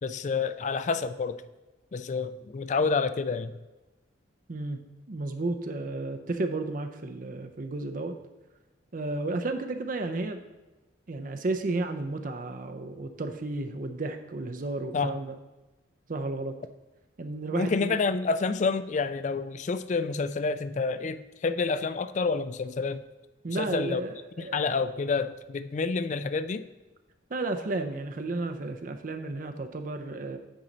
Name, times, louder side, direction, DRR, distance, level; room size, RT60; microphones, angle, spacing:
voice 1, 0.0-1.4 1.9-3.5 14.9-15.1 17.5-23.0 23.6-24.0 24.4-26.6, left 4 dB, 40° left, 13 dB, 0.3 m, -28 dB
voice 2, 4.5-4.8 5.1-8.2 8.9-10.4 11.1-15.3 16.1-16.6 17.2-17.9 23.4-24.7 27.3-30.4, right 2 dB, 45° right, 6 dB, 0.5 m, -32 dB
8.9 x 5.4 x 3.9 m, 1.1 s
head